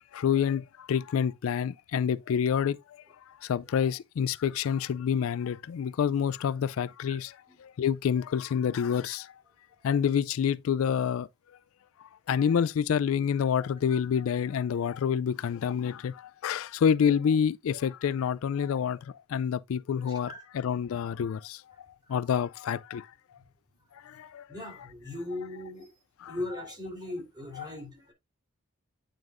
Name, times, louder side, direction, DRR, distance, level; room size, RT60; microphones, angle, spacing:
voice 1, 0.1-2.8 3.4-7.4 7.6-9.3 9.8-11.3 12.3-21.6 22.1-23.1 24.0-24.4 26.2-26.4 27.6-27.7, left 7 dB, 75° left, 0.3 m, -28 dB
voice 2, 24.5-25.9 26.3-28.1, left 1 dB, 20° right, 3.5 m, -39 dB
8.8 x 6.5 x 2.5 m
head